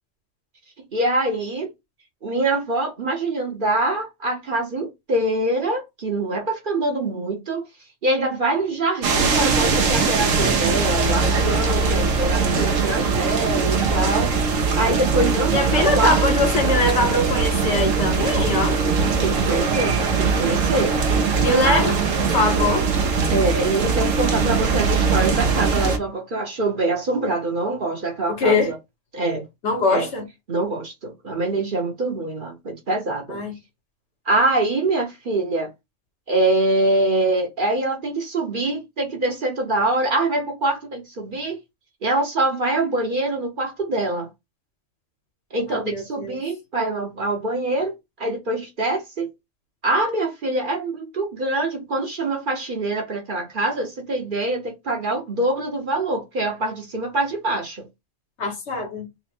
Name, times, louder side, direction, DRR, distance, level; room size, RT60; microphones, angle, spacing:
voice 1, 0.9-1.7 2.2-7.6 8.0-14.3 14.8-16.2 19.2-20.9 21.2-21.4 21.6-21.9 23.3-28.8 29.1-29.4 29.9-30.1 30.5-33.4 34.3-35.7 36.3-41.6 42.0-44.3 45.5-49.3 49.8-57.9, right 2 dB, 45° right, 0.9 m, -24 dB
sound 1, 9.0-26.0, right 4 dB, 80° right, 1.1 m, -21 dB
voice 2, 15.5-18.8 21.4-22.9 28.3-28.7 29.6-30.3 33.3-33.5 45.7-46.4 58.4-59.1, left 2 dB, 65° left, 1.3 m, -22 dB
3.9 x 2.1 x 4.2 m
omnidirectional pair, 1.3 m